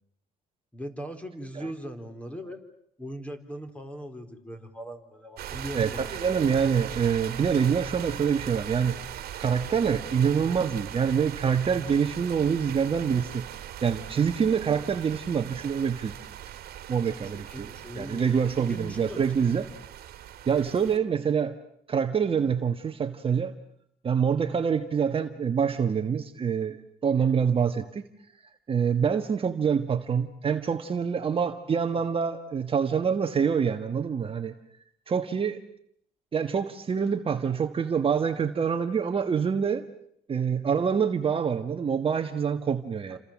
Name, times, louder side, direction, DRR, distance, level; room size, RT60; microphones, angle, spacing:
voice 1, 0.7-2.6 3.0-6.3 17.3-18.4 18.7-19.3 43.1-43.2, equal, 5° left, 7 dB, 4.0 m, -39 dB
sound 1, 5.4-21.0, right 11 dB, 65° right, 2.1 m, -40 dB
voice 2, 5.7-13.4 13.8-16.2 16.9-17.7 17.9-19.7 20.5-21.5 21.9-23.5 24.0-28.0 28.7-34.5 35.1-35.6 36.3-39.8 40.3-43.2, right 7 dB, 35° right, 7 dB, 1.5 m, -26 dB
29.5 x 27.0 x 7.4 m, 0.72 s
cardioid pair, 110°, 17 cm